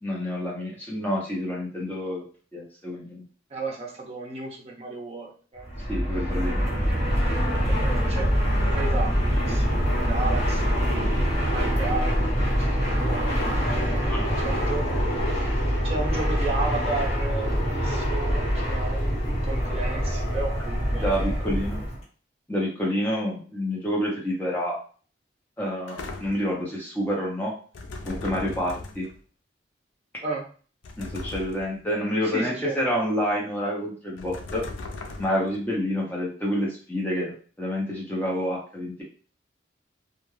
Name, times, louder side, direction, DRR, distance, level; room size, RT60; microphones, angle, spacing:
voice 1, 0.0-2.2 2.5-3.2 5.9-6.6 14.1-14.4 20.9-21.8 22.5-24.8 25.6-27.5 28.0-29.1 31.0-34.7 35.2-39.0, equal, 10° left, -4 dB, 0.8 m, -28 dB
voice 2, 3.5-5.7 7.5-8.3 8.6-14.9 15.8-21.4 30.2-30.5 32.2-32.8, right 3 dB, 35° right, -1 dB, 0.6 m, -34 dB
Fixed-wing aircraft airplane, 5.6-22.0, equal, 35° left, 1.3 m, -24 dB
sound 1, 25.9-26.6 27.7-29.2 30.8-31.8 34.2-35.6, left 2 dB, 90° left, 0.4 m, -38 dB
2.4 x 2.3 x 3.2 m, 0.41 s
head